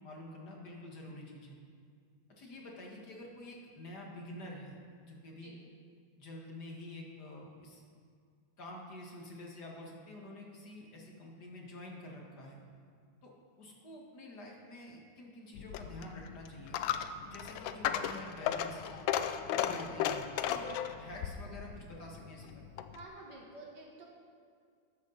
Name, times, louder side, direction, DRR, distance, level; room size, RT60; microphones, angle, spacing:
voice 1, 0.0-1.6 2.4-5.5 6.2-7.8 8.6-12.6 13.2-13.3 13.6-16.8 17.2-19.0 19.5-22.6, left 1 dB, 60° left, -1 dB, 2.4 m, -48 dB
Coin (dropping), 15.5-23.1, left 10 dB, 90° left, 1.4 m, -36 dB
voice 2, 19.6-20.0 22.9-24.1, right 2 dB, 65° right, -2 dB, 2.4 m, -51 dB
13.5 x 11.0 x 4.1 m, 2.2 s
omnidirectional pair, 2.0 m